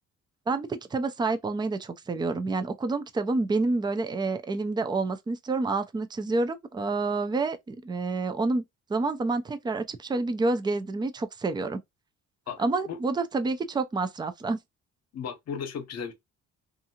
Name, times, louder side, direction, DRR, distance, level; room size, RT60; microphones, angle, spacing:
voice 1, 0.5-8.6 8.9-11.8 12.6-14.6, right 3 dB, 15° right, 0.4 m, -28 dB
voice 2, 12.5-13.0 15.1-16.1, left 7 dB, 60° left, 0.8 m, -36 dB
2.6 x 2.5 x 2.8 m
cardioid pair, 90°, 30 cm